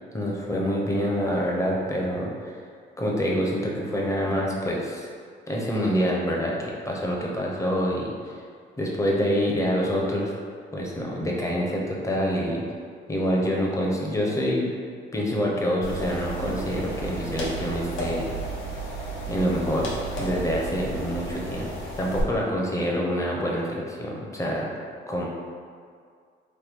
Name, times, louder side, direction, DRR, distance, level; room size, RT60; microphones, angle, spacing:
voice 1, 0.1-2.5 3.0-5.1 5.5-8.4 8.8-10.3 10.7-12.6 13.1-14.8 15.1-18.3 19.3-19.9 20.2-21.7 22.0-24.7 25.1-25.3, equal, 15° left, -3 dB, 0.6 m, -26 dB
sound 1, 15.8-22.2, right 2 dB, 80° left, 0.8 m, -33 dB
3.1 x 2.1 x 3.5 m, 2.1 s
cardioid pair, 90°, 20 cm